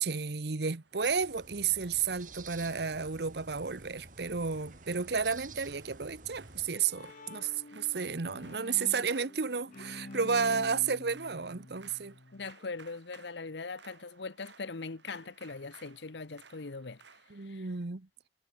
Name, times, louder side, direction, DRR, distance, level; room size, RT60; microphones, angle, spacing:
voice 1, 0.0-12.1 17.3-18.1, right 5 dB, 60° right, 1.0 m, -32 dB
sound 1, 0.6-17.5, right 5 dB, 75° right, 6.3 m, -60 dB
sound 2, 0.9-6.7, right 3 dB, 45° right, 3.6 m, -51 dB
Bowed string instrument, 6.4-12.5, left 2 dB, 45° left, 0.9 m, -48 dB
voice 2, 12.3-17.0 17.5-17.7, left 4 dB, 70° left, 0.9 m, -41 dB
head